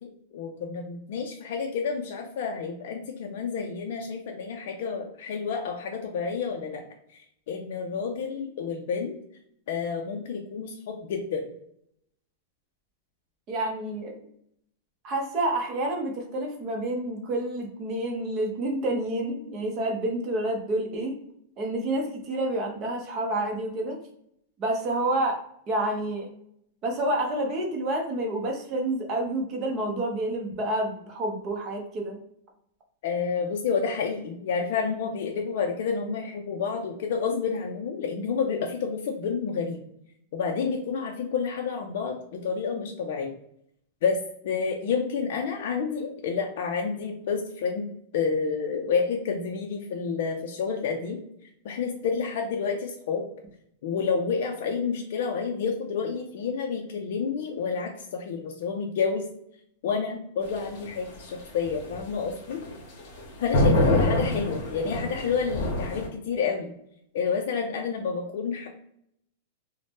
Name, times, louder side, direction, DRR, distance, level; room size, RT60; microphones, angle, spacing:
voice 1, 0.0-6.8 7.5-9.2 9.7-11.4 33.0-39.8 40.3-43.3 44.0-44.2 44.4-47.9 48.1-51.2 51.6-53.2 53.8-59.2 59.8-62.6 63.4-66.7 67.1-68.7, left 5 dB, 60° left, 1 dB, 0.4 m, -29 dB
voice 2, 13.5-14.2 15.0-21.1 21.6-24.0 24.6-25.4 25.7-26.3 26.8-32.2, right 1 dB, 25° right, 1 dB, 0.6 m, -29 dB
sound 1, 60.4-66.1, left 1 dB, 45° left, 0.9 m, -27 dB
2.6 x 2.0 x 3.3 m, 0.72 s
supercardioid pair, 170°, 0 cm